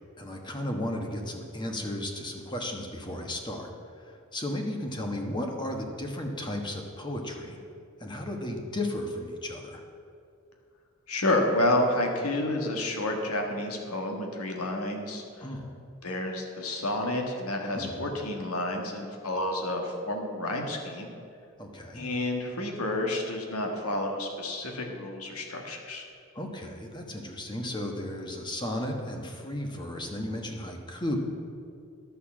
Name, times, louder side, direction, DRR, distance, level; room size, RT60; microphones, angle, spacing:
voice 1, 0.2-3.7 4.3-7.6 8.0-9.8 15.4-15.7 17.7-18.1 21.6-22.0 26.3-31.2, left 1 dB, 20° left, 2 dB, 1.2 m, -34 dB
voice 2, 11.1-15.5 16.0-21.1 21.9-26.0, left 1 dB, 90° left, 3 dB, 1.6 m, -30 dB
11.0 x 6.6 x 7.4 m, 2.4 s
head